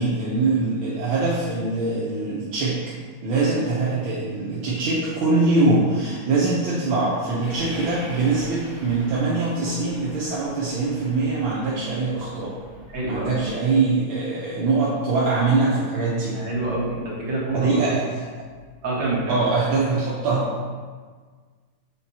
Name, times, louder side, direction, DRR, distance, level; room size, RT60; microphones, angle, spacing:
voice 1, 0.0-2.9 3.2-12.5 13.0-16.4 17.5-18.1 19.3-20.7, right 3 dB, 75° right, -8 dB, 1.7 m, -23 dB
Train, 7.4-13.7, equal, 15° right, 1.7 m, -44 dB
voice 2, 12.9-13.4 16.3-17.8 18.8-19.4, right 2 dB, 60° right, -6 dB, 2.1 m, -26 dB
7.7 x 4.4 x 2.8 m, 1.5 s
omnidirectional pair, 2.3 m